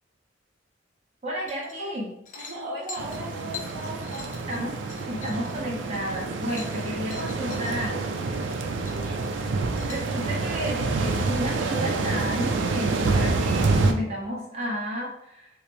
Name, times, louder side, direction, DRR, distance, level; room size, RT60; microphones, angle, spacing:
voice 1, 1.2-2.1 4.5-4.8 5.1-8.1 9.9-15.5, equal, 35° right, -4 dB, 0.9 m, -32 dB
sound 1, 1.5-2.0 2.2-7.7 8.1-8.6 8.8-10.1, left 5 dB, 40° left, 0.5 m, -43 dB
voice 2, 2.3-4.6 8.8-9.2, right 1 dB, 60° right, -9 dB, 1.1 m, -37 dB
sound 2, 3.0-13.9, right 3 dB, 80° right, 0.4 m, -27 dB
5.0 x 2.0 x 3.0 m, 0.78 s
head